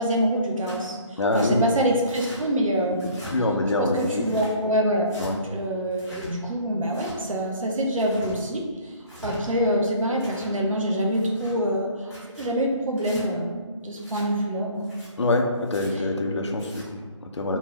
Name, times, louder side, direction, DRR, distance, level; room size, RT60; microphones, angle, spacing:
voice 1, 0.0-3.2 3.8-5.1 5.4-8.9 9.2-12.1 12.4-14.9 17.5-17.6, equal, 85° right, 0 dB, 0.6 m, -25 dB
Tearing, 0.6-0.9 1.3-1.5 2.1-2.4 2.9-3.3 3.9-4.5 5.1-5.3 5.9-6.3 6.9-7.1 7.8-8.3 8.9-9.4 10.0-10.5 11.1-11.5 12.0-12.5 13.0-13.2 14.0-14.2 14.8-15.1 15.6-15.9 16.5-16.8, equal, ahead, 0.8 m, -43 dB
voice 2, 1.2-1.7 3.2-4.3 5.2-5.4 15.2-17.6, left 2 dB, 60° left, 3 dB, 0.4 m, -25 dB
2.5 x 2.0 x 3.0 m, 1.5 s
figure-of-eight pair, 180°, 16 cm